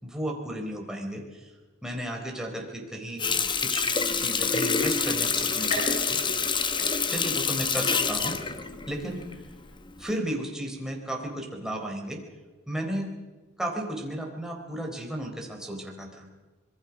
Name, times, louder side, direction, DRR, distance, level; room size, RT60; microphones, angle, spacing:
voice 1, 0.0-1.5 1.8-3.3 3.6-3.9 4.1-6.2 7.1-8.5 8.9-9.3 10.0-12.2 12.7-13.1 13.6-16.3, right 1 dB, 5° right, 0 dB, 4.1 m, -34 dB
Water tap faucet, 3.2-9.6 10.0-10.1, left 5 dB, 25° left, 1.1 m, -27 dB
sound 1, 5.7-7.4 7.9-8.4 8.9-9.0 10.0-10.1, left 1 dB, 40° left, 4.4 m, -38 dB
26.0 x 22.0 x 6.0 m, 1.3 s
head